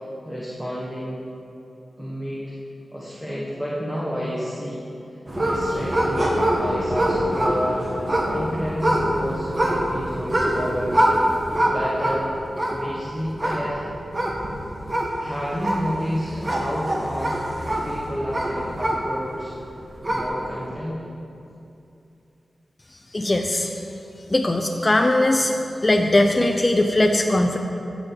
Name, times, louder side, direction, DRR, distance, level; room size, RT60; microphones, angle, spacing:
voice 1, 0.2-1.2 2.0-2.5 2.9-4.9 5.3-11.0 11.6-12.3 12.7-13.9 15.1-19.5 20.1-21.0, equal, 5° right, -7 dB, 1.4 m, -30 dB
sound 1, 5.3-19.4 19.8-20.5, right 1 dB, 30° right, 1.4 m, -24 dB
voice 2, 23.1-23.7 24.3-25.5 25.8-27.6, left 1 dB, 25° left, 3 dB, 0.5 m, -19 dB
12.5 x 7.1 x 4.0 m, 2.7 s
wide cardioid pair, 100°, 0 cm